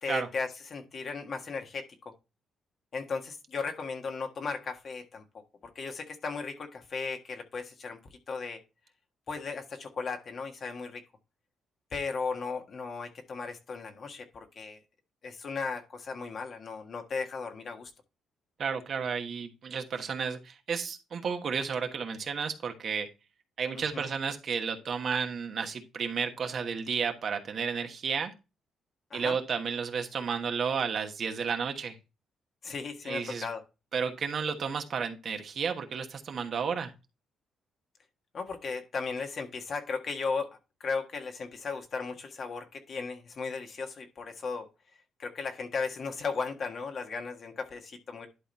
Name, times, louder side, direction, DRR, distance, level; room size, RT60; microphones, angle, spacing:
voice 1, 0.0-2.1 2.9-8.0 8.3-8.6 9.3-11.0 11.9-14.8 15.2-17.9 23.7-24.0 29.1-29.4 32.6-33.6 38.3-44.7 45.2-48.3, left 4 dB, 50° left, 1.5 m, -36 dB
voice 2, 18.6-23.1 23.6-28.3 29.1-32.0 33.0-33.5 33.9-36.9, right 6 dB, 55° right, 1.3 m, -32 dB
11.0 x 3.9 x 4.2 m
cardioid pair, 90°, 0 cm